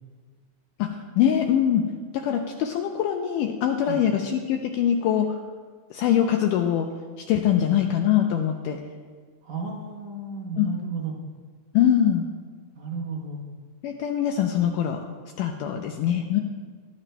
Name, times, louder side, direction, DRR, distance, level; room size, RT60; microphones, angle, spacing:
voice 1, 0.8-1.9 2.1-5.4 5.9-6.9 7.3-8.8 10.6-10.7 11.7-12.2 13.8-15.0 15.4-16.4, left 10 dB, 85° left, 4 dB, 1.9 m, -23 dB
voice 2, 9.4-11.2 12.8-13.4 15.7-15.8, right 4 dB, 65° right, -1 dB, 2.3 m, -33 dB
18.5 x 11.0 x 2.2 m, 1.5 s
omnidirectional pair, 4.3 m